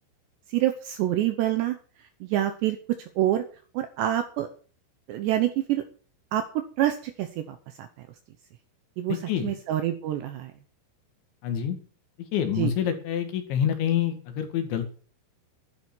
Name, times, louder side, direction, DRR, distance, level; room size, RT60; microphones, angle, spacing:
voice 1, 0.5-1.8 2.2-3.4 3.8-4.5 5.1-5.8 6.3-6.4 6.8-7.4 7.8-7.9 9.0-10.5 12.6-12.7, right 13 dB, 75° right, 9 dB, 2.6 m, -26 dB
voice 2, 9.1-9.5 11.4-11.8 12.3-14.9, left 9 dB, 65° left, 6 dB, 4.0 m, -27 dB
12.0 x 11.0 x 6.1 m, 0.41 s
omnidirectional pair, 6.0 m